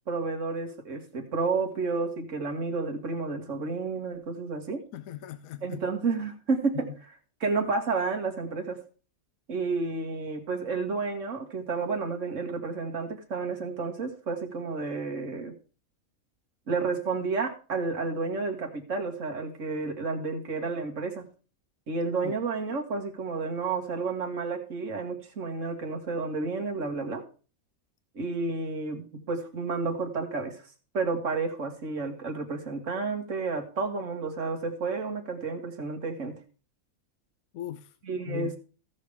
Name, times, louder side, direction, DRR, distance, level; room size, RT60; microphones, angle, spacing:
voice 1, 0.1-4.8 5.6-6.9 7.4-8.8 9.5-15.5 16.7-21.2 21.9-27.2 28.2-30.6 30.9-36.3 38.1-38.6, right 4 dB, 60° right, 1.9 m, -31 dB
voice 2, 4.9-5.8 6.7-6.9 22.2-22.3 37.5-37.9 38.3-38.6, left 12 dB, 75° left, 1.0 m, -38 dB
16.0 x 6.6 x 3.5 m
omnidirectional pair, 1.5 m